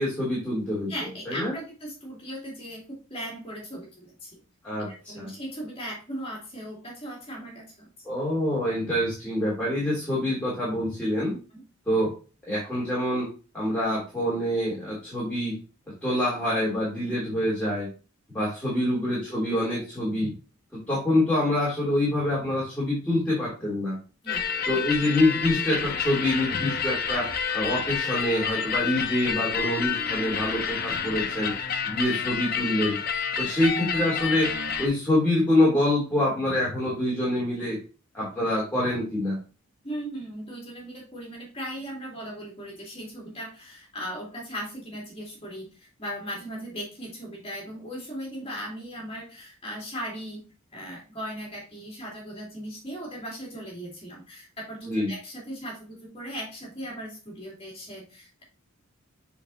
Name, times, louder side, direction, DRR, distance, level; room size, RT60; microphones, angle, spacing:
voice 1, 0.0-0.9 1.3-1.5 4.6-5.3 8.0-11.3 11.9-12.1 12.5-13.3 13.5-15.6 16.0-17.9 18.3-20.3 20.7-24.0 24.7-27.3 27.5-31.5 31.8-33.0 33.4-34.5 34.8-37.8 38.1-39.4 54.9-55.1, left 1 dB, 5° left, -8 dB, 3.1 m, -26 dB
voice 2, 0.9-4.4 4.8-7.9 11.5-11.6 18.7-18.8 24.2-24.4 39.8-50.4 50.7-58.4, equal, 25° left, -3 dB, 2.7 m, -38 dB
sound 1, 24.3-34.9, left 6 dB, 45° left, 0.7 m, -29 dB
8.1 x 4.7 x 2.8 m, 0.34 s
head